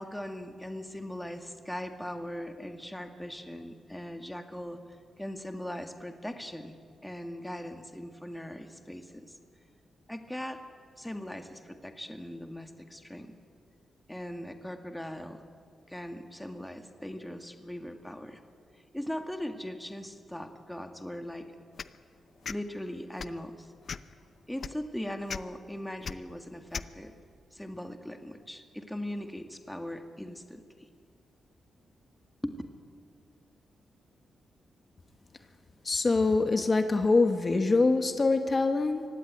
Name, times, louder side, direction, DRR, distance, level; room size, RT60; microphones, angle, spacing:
voice 1, 0.0-4.8 5.2-6.7 7.0-9.4 10.1-10.6 11.0-13.3 14.1-15.4 15.9-18.4 18.9-21.6 22.5-23.7 24.5-27.1 27.5-30.9 32.4-32.6, left 1 dB, 5° left, 6 dB, 1.9 m, -39 dB
sound 1, 21.8-22.0 22.4-22.6 23.1-23.4 23.9-24.1 24.6-24.7 25.3-25.4 26.0-26.1 26.7-26.9, left 6 dB, 60° left, 0.7 m, -36 dB
voice 2, 35.9-39.1, left 3 dB, 40° left, 7 dB, 1.9 m, -24 dB
24.5 x 16.5 x 9.6 m, 2.3 s
cardioid pair, 60°, 0 cm